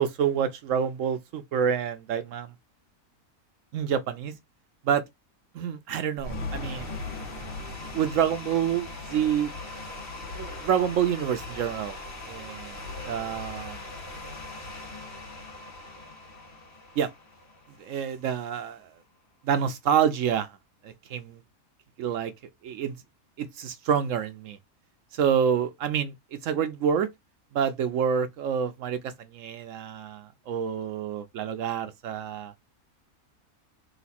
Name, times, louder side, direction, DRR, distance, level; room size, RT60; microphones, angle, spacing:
voice 1, 0.0-2.5 3.7-4.3 4.8-5.0 5.5-6.9 7.9-9.5 10.3-12.0 12.2-13.8 17.0-17.1 17.8-18.9 19.4-20.6 20.8-21.4 22.0-22.3 22.6-22.9 23.4-24.6 25.1-27.1 27.5-32.5, right 8 dB, 70° right, 0.9 m, -27 dB
sound 1, 6.2-18.3, left 2 dB, 35° left, 2.2 m, -39 dB
4.0 x 2.5 x 4.1 m
omnidirectional pair, 1.5 m